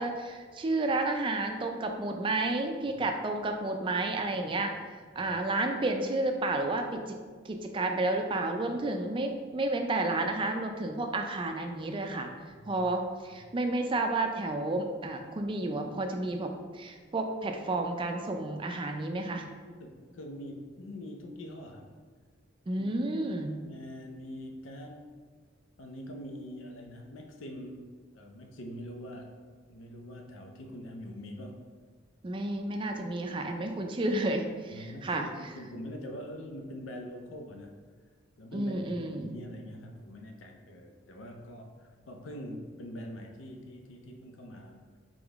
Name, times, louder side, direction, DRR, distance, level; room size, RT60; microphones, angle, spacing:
voice 1, 0.0-4.7 5.2-7.2 7.5-12.3 12.7-19.4 22.7-23.6 32.2-35.3 38.5-39.3, right 2 dB, 25° right, 4 dB, 0.4 m, -31 dB
voice 2, 12.6-12.9 13.3-13.4 19.1-21.9 22.8-22.9 23.4-25.1 25.8-29.3 29.7-31.7 34.7-37.8 38.4-45.0, equal, 80° left, 3 dB, 0.6 m, -44 dB
3.8 x 3.7 x 3.5 m, 1.5 s
head